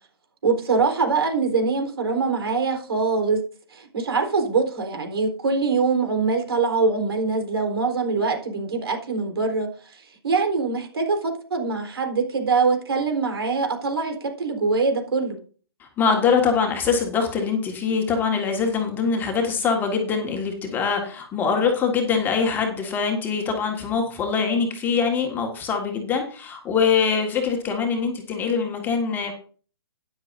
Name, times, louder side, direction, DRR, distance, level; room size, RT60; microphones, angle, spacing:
voice 1, 0.4-3.4 3.7-15.4, right 4 dB, 70° right, 4 dB, 3.9 m, -23 dB
voice 2, 15.8-29.3, left 5 dB, 15° left, 2 dB, 1.7 m, -23 dB
13.0 x 10.5 x 2.6 m, 0.41 s
hypercardioid pair, 140°, 14 cm